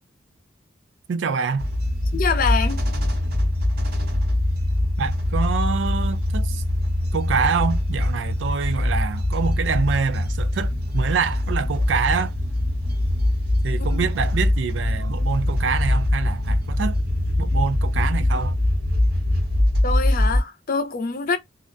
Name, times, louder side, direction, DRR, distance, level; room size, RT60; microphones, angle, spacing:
voice 1, 1.1-1.7 5.0-6.6 7.1-12.3 13.6-17.0 17.4-18.6, right 5 dB, 75° right, 0.4 m, -26 dB
sound 1, 1.6-20.4, left 1 dB, 60° right, 0.9 m, -22 dB
voice 2, 2.1-2.8 13.9-14.0 19.8-21.4, left 5 dB, 50° left, 0.6 m, -25 dB
2.4 x 2.1 x 2.5 m
head